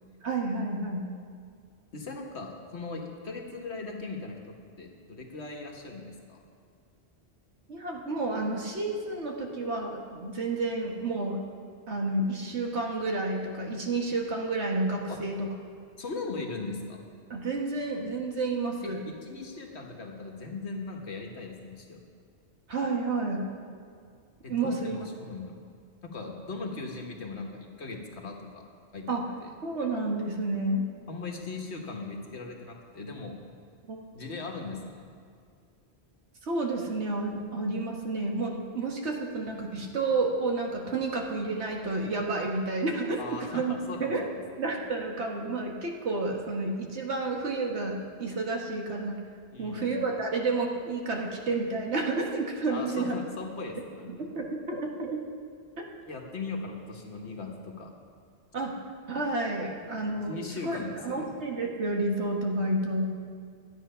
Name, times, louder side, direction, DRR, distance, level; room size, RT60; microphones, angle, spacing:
voice 1, 0.2-1.1 7.7-11.4 11.9-15.5 17.3-19.0 22.7-23.5 24.5-25.0 29.1-29.2 29.6-30.9 33.9-34.0 36.5-43.8 44.0-44.2 44.6-49.2 49.6-53.2 54.1-55.2 55.8-55.9 58.5-58.8 59.1-60.4 60.6-60.8 61.0-63.1, right 2 dB, 85° right, 0 dB, 1.7 m, -30 dB
voice 2, 1.9-6.4 15.1-15.2 16.0-17.0 18.8-22.0 24.4-25.6 26.0-28.7 28.9-29.5 31.1-33.4 34.1-35.1 43.2-44.4 49.5-50.0 52.7-54.1 56.1-57.9 60.3-61.3, left 3 dB, 80° left, 1 dB, 1.6 m, -39 dB
12.5 x 9.1 x 5.6 m, 2.2 s
omnidirectional pair, 1.1 m